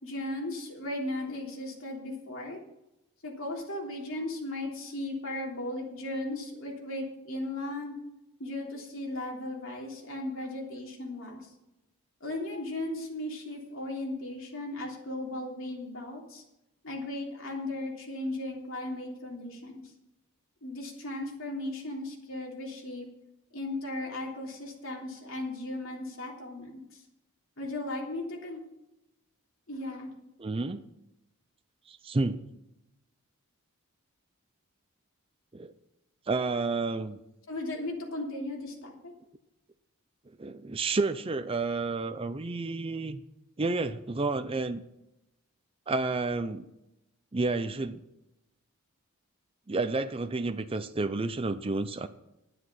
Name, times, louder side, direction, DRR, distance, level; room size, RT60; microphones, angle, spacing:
voice 1, 0.0-2.6 3.2-8.0 8.4-11.5 12.2-16.4 16.8-19.9 20.6-23.1 23.5-27.0 27.6-28.6 29.7-30.1 37.5-39.1, left 1 dB, 60° left, -1 dB, 3.3 m, -36 dB
voice 2, 30.4-30.9 31.9-32.4 35.5-35.7 36.3-37.2 40.4-43.2 43.6-44.8 45.9-46.7 47.3-48.0 49.7-52.1, right 3 dB, 25° right, 10 dB, 0.5 m, -30 dB
11.0 x 9.7 x 5.7 m, 0.90 s
head